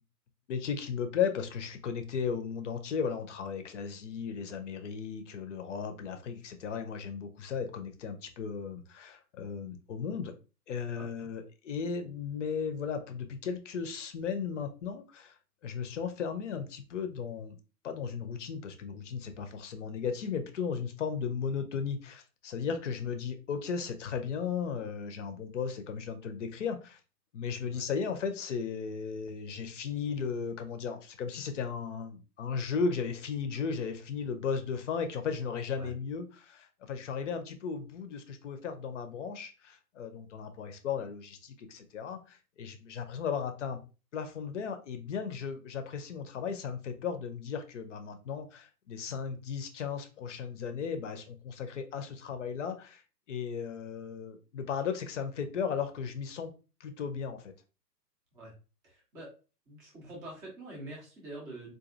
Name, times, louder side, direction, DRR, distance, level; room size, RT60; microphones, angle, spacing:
voice 1, 0.5-10.3 10.7-15.3 15.6-17.6 17.8-27.0 27.3-43.8 44.1-53.0 53.3-56.5 56.8-57.5, left 6 dB, 45° left, 8 dB, 0.6 m, -35 dB
voice 2, 58.8-59.3 59.7-61.7, right 2 dB, 5° right, -3 dB, 0.5 m, -45 dB
3.9 x 2.5 x 2.4 m, 0.33 s
figure-of-eight pair, 115°, 49 cm